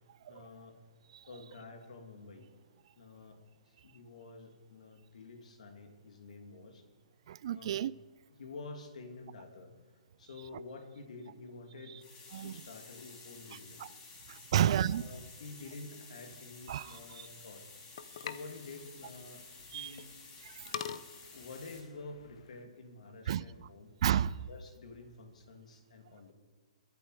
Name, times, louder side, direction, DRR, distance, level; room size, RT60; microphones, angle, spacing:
voice 1, 0.3-0.8 1.3-2.5 3.0-3.4 3.7-6.9 7.5-7.8 8.4-9.7 10.2-12.0 12.4-13.9 14.5-14.7 15.0-17.6 18.2-19.4 19.7-20.1 21.3-23.9 24.5-26.3, left 3 dB, 70° left, 2.5 m, -49 dB
voice 2, 7.3-7.9 12.3-12.5 13.8-13.9 14.3-15.0 16.7-17.3 19.7-20.0 20.5-20.9 23.3-23.7 24.0-24.4, right 10 dB, 50° right, 0.4 m, -32 dB
sound 1, 12.0-21.8, left 4 dB, 25° left, 2.9 m, -53 dB
sound 2, 16.2-22.6, left 8 dB, 55° left, 0.8 m, -47 dB
21.5 x 8.4 x 4.8 m
hypercardioid pair, 155°, 4 cm